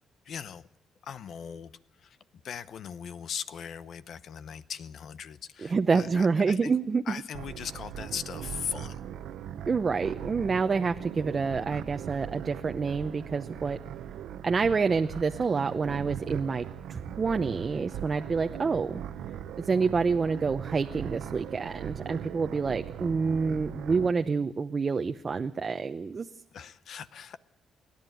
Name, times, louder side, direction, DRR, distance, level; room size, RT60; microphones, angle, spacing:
voice 1, 0.3-0.7 1.0-1.7 2.0-2.2 2.4-6.7 7.1-9.0 26.5-27.4, left 8 dB, 65° left, 15 dB, 0.8 m, -39 dB
voice 2, 5.6-7.1 9.7-13.8 14.4-19.0 19.6-26.3, right 5 dB, 35° right, 7 dB, 0.8 m, -28 dB
sound 1, 7.3-24.1, right 10 dB, 80° right, 1.1 m, -40 dB
28.5 x 11.0 x 9.2 m, 0.76 s
cardioid pair, 90°, 0 cm